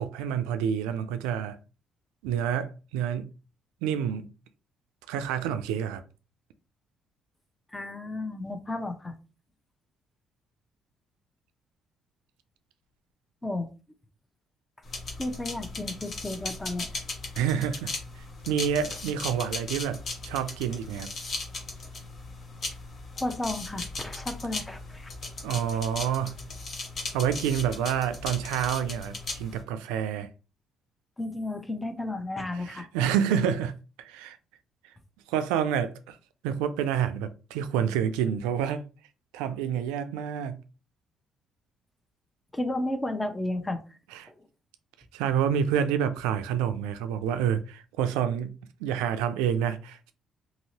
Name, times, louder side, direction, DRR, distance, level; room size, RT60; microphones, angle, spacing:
voice 1, 0.0-1.6 2.2-3.3 3.8-4.3 5.1-6.0 17.4-17.9 18.2-21.1 25.4-26.3 27.1-30.3 32.5-33.7 34.0-34.4 35.3-36.2 36.4-38.8 39.3-40.6 44.1-44.3 45.1-48.5 48.8-50.1, right 8 dB, 80° right, 0.3 m, -28 dB
voice 2, 7.7-9.1 13.4-13.7 15.2-16.9 23.2-25.1 31.2-32.9 42.5-43.8, left 2 dB, 15° left, 0.7 m, -33 dB
sound 1, 14.8-29.6, left 3 dB, 55° left, 1.1 m, -37 dB
2.9 x 2.8 x 2.7 m
hypercardioid pair, 50°, 0 cm